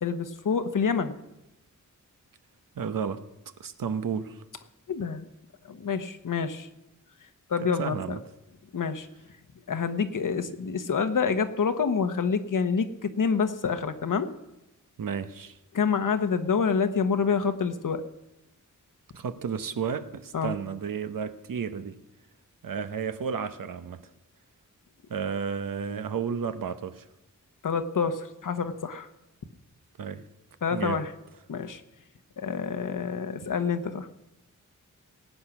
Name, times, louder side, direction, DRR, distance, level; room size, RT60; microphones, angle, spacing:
voice 1, 0.0-1.2 4.9-5.2 5.7-6.7 7.5-8.2 8.7-9.1 9.7-14.3 15.7-18.0 20.3-20.5 27.6-29.1 30.6-31.1 31.5-31.8 32.4-34.1, left 6 dB, 70° left, 9 dB, 1.1 m, -27 dB
voice 2, 2.8-3.2 3.6-4.4 7.8-8.2 15.0-15.6 19.1-22.0 22.6-24.0 25.1-27.0 30.0-30.2 30.7-31.0, right 6 dB, 90° right, 10 dB, 1.0 m, -32 dB
18.5 x 8.9 x 6.0 m, 0.93 s
wide cardioid pair, 115°, 32 cm